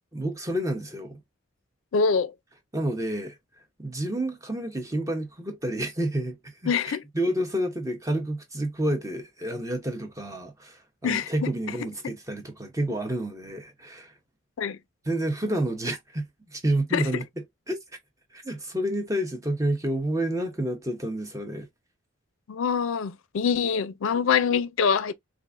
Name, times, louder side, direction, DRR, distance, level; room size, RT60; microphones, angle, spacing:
voice 1, 0.1-1.2 2.7-3.4 3.8-14.1 15.1-17.2 17.7-17.8 18.3-21.7, right 1 dB, 15° right, 0.7 m, -29 dB
voice 2, 1.9-2.3 6.7-7.0 11.0-11.5 14.6-14.8 16.9-17.0 22.5-25.1, left 6 dB, 75° left, 0.4 m, -24 dB
4.6 x 2.4 x 2.5 m
head